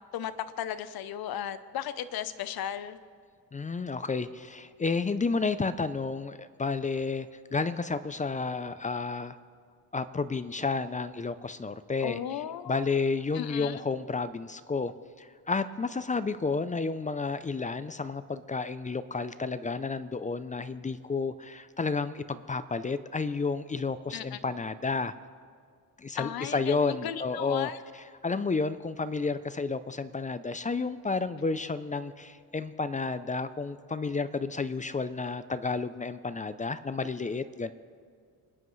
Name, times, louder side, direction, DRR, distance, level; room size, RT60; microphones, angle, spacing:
voice 1, 0.6-3.0 12.0-12.8 13.3-13.8 24.1-24.4 26.2-27.8, left 10 dB, 70° left, 13 dB, 0.7 m, -35 dB
voice 2, 3.5-9.4 9.9-12.2 12.6-14.9 15.2-25.1 26.0-27.7 28.2-37.7, left 4 dB, 20° left, 13 dB, 0.4 m, -31 dB
27.0 x 10.0 x 3.2 m, 2.1 s
cardioid pair, 115°, 38 cm